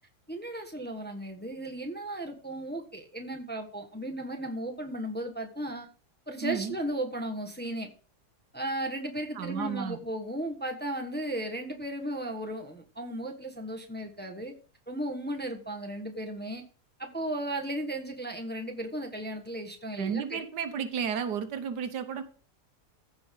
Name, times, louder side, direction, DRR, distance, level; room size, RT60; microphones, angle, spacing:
voice 1, 0.3-5.8 6.3-7.9 8.5-14.5 14.9-16.6 17.0-20.4, right 1 dB, 5° left, 2 dB, 1.1 m, -35 dB
voice 2, 6.4-6.8 9.3-10.0 20.0-22.2, right 7 dB, 80° right, 10 dB, 1.6 m, -32 dB
15.0 x 5.3 x 3.6 m, 0.38 s
omnidirectional pair, 1.8 m